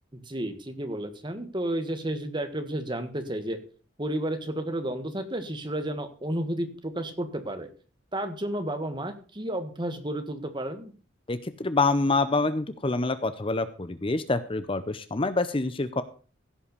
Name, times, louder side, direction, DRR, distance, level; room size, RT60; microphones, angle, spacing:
voice 1, 0.1-3.6 4.0-7.7 8.1-10.9, right 1 dB, 25° right, 8 dB, 1.6 m, -32 dB
voice 2, 11.3-16.0, left 3 dB, 25° left, 12 dB, 0.7 m, -26 dB
16.0 x 5.7 x 6.7 m, 0.39 s
head